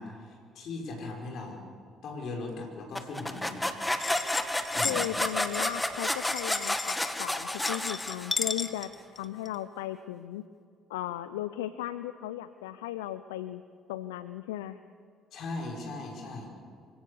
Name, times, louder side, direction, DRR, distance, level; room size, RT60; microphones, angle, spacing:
voice 1, 0.0-1.6 2.0-3.6 4.7-5.0 15.3-16.5, left 3 dB, 60° left, 1 dB, 5.5 m, -38 dB
sound 1, 2.9-8.6, left 1 dB, 10° left, 1.8 m, -31 dB
sound 2, 4.0-9.6, left 4 dB, 30° left, 1.6 m, -36 dB
voice 2, 4.8-8.9 9.2-10.4 10.9-13.6 13.9-14.8, left 13 dB, 80° left, 13 dB, 0.5 m, -36 dB
25.5 x 16.5 x 7.0 m, 2.3 s
hypercardioid pair, 55°, 0 cm